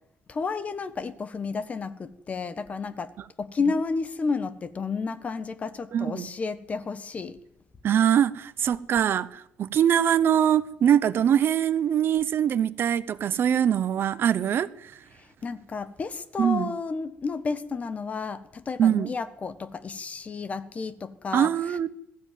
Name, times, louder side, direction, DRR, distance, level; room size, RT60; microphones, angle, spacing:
voice 1, 0.3-3.1 3.4-7.4 15.4-21.5, left 4 dB, 30° left, 1.4 m, -31 dB
voice 2, 5.9-6.3 7.8-14.9 16.4-16.7 18.8-19.1 21.3-21.9, right 9 dB, 50° right, 0.9 m, -23 dB
20.5 x 14.0 x 9.4 m
cardioid pair, 135°, 5 cm